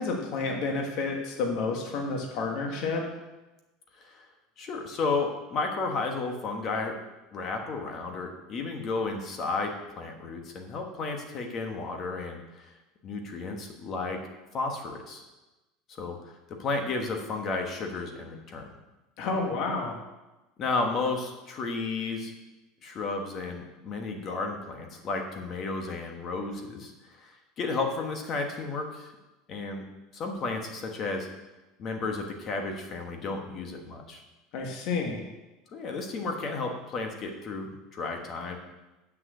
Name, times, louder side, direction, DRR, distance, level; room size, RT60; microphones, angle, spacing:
voice 1, 0.0-3.0 19.2-20.0 34.5-35.2, left 3 dB, 45° left, 1 dB, 1.4 m, -30 dB
voice 2, 4.6-7.0 7.3-12.7 13.0-14.2 14.5-15.2 16.0-18.7 20.6-22.3 22.8-29.1 29.5-29.8 30.1-31.3 31.8-34.2 35.7-38.6, left 3 dB, 30° left, 3 dB, 1.3 m, -33 dB
7.6 x 6.4 x 7.9 m, 1.1 s
cardioid pair, 175°, 0 cm